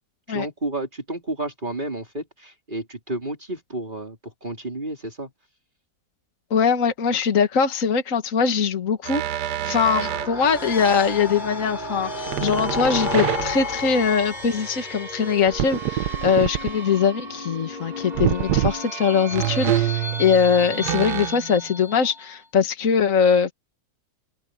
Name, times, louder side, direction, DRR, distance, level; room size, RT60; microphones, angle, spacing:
voice 1, 0.3-5.3, right 2 dB, 30° right, 4.0 m, -31 dB
voice 2, 6.5-23.5, left 6 dB, 55° left, 2.0 m, -22 dB
sound 1, 9.0-10.3 12.3-13.8 15.5-16.7 18.1-18.8 19.3-21.6, right 12 dB, 80° right, 1.4 m, -26 dB
sound 2, 9.8-22.3, left 1 dB, 25° left, 4.8 m, -32 dB
omnidirectional pair, 1.8 m